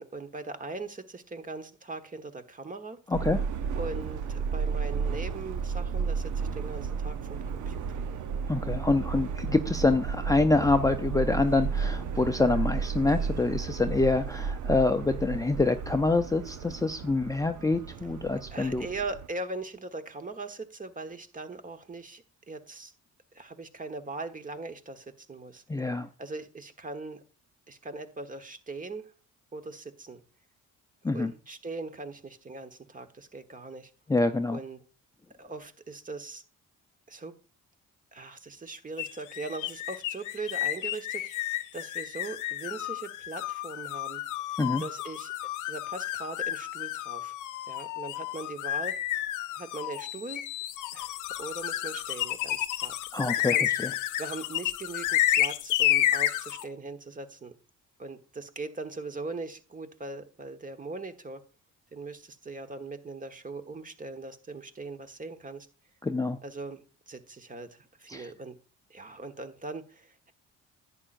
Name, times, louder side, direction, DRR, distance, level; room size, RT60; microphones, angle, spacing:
voice 1, 0.0-3.0 3.8-8.0 18.5-22.9 23.3-25.6 26.2-27.2 27.7-29.1 29.5-30.2 31.0-33.9 34.5-34.8 35.4-36.4 37.1-37.3 38.1-44.2 44.5-45.3 45.7-47.3 47.7-49.2 49.5-50.4 50.9-51.1 51.4-53.7 54.0-57.5 58.0-61.4 61.9-65.7 66.4-68.6 68.9-70.3, right 3 dB, 25° right, 8 dB, 1.3 m, -40 dB
voice 2, 3.1-3.4 8.5-18.9 25.7-26.1 31.0-31.3 34.1-34.6 44.6-44.8 53.1-53.9 66.0-66.4 68.1-68.3, left 3 dB, 10° left, 7 dB, 0.6 m, -26 dB
Subway metro underground, 3.1-19.3, right 6 dB, 75° right, 0.9 m, -33 dB
sound 1, 39.0-56.7, left 13 dB, 90° left, 0.7 m, -31 dB
11.0 x 8.8 x 2.6 m, 0.34 s
cardioid pair, 90°, 30 cm